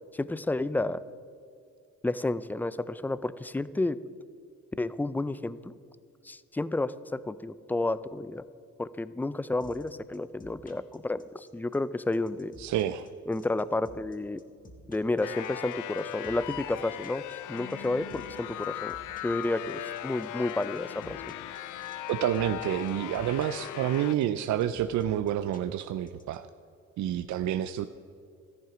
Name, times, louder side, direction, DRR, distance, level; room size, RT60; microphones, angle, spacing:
voice 1, 0.1-1.0 2.0-4.0 4.8-5.7 6.2-8.4 8.8-12.5 13.3-14.4 14.9-19.0 19.2-21.2, left 2 dB, 5° left, 16 dB, 0.4 m, -31 dB
sound 1, 9.6-26.4, left 1 dB, 25° left, 1.6 m, -52 dB
voice 2, 12.6-13.1 22.1-26.5 27.0-27.9, right 11 dB, 70° right, 11 dB, 0.5 m, -29 dB
sound 2, 15.2-24.1, left 13 dB, 80° left, 0.5 m, -38 dB
13.5 x 11.0 x 5.1 m, 2.4 s
cardioid pair, 90°, 30 cm